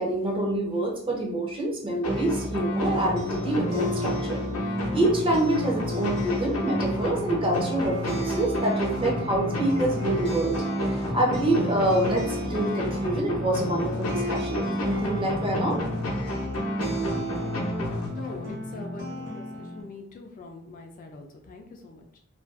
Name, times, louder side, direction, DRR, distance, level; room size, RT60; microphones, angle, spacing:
voice 1, 0.0-4.4 4.9-10.6 10.9-15.8, right 1 dB, 25° right, -1 dB, 0.5 m, -26 dB
sound 1, 2.0-18.6, left 1 dB, 80° left, 0.6 m, -30 dB
sound 2, 2.9-19.8, equal, 50° right, 0.8 m, -35 dB
voice 2, 18.1-22.2, left 2 dB, 40° left, 3 dB, 0.3 m, -43 dB
2.4 x 2.2 x 2.4 m, 0.66 s
head